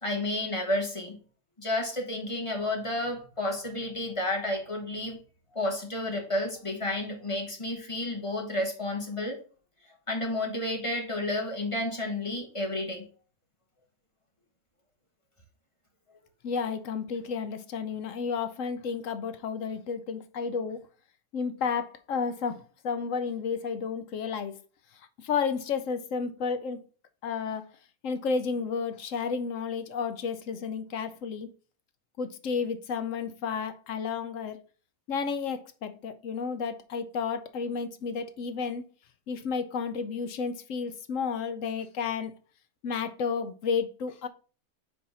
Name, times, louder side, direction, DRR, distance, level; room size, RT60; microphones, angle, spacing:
voice 1, 0.0-1.2 1.6-5.2 5.5-9.4 10.1-13.1, left 1 dB, 20° left, 1.4 m, -31 dB
voice 2, 16.4-20.8 21.3-24.6 25.2-26.8 27.2-27.7 28.0-31.5 32.2-34.6 35.1-38.8 39.3-42.3 42.8-44.3, left 5 dB, 65° left, 1.0 m, -32 dB
4.7 x 4.4 x 5.5 m
omnidirectional pair, 1.5 m